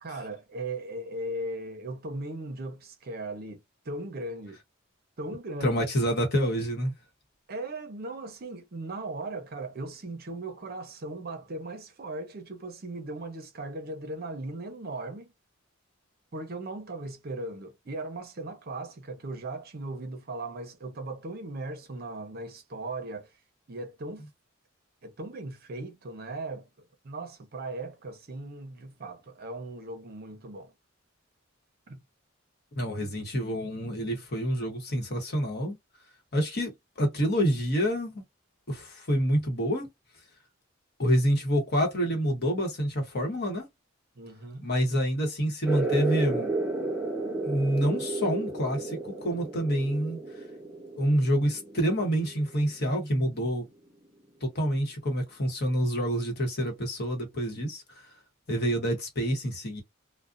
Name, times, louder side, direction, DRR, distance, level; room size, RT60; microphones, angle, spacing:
voice 1, 0.0-4.6 5.2-5.9 7.5-15.3 16.3-23.3 23.7-24.3 25.0-30.7 31.9-32.0 44.2-44.7, right 2 dB, 50° right, 0.6 m, -38 dB
voice 2, 5.6-6.9 32.8-35.7 36.3-38.2 38.7-39.9 41.0-43.7 44.6-46.5 47.4-50.2 51.0-53.6 54.4-57.8 58.5-59.8, equal, 50° left, 1.0 m, -27 dB
sound 1, 45.6-52.8, right 2 dB, 5° right, 0.8 m, -33 dB
2.5 x 2.1 x 2.4 m
head